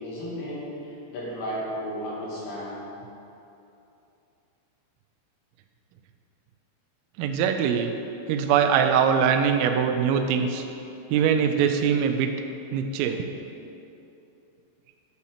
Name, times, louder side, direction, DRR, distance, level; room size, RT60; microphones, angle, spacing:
voice 1, 0.0-2.8, equal, 75° left, -6 dB, 4.7 m, -34 dB
voice 2, 7.2-7.9 8.3-10.6 11.1-12.3 12.7-13.2, right 7 dB, 90° right, 5 dB, 3.2 m, -22 dB
11.5 x 5.5 x 6.6 m, 2.8 s
omnidirectional pair, 5.7 m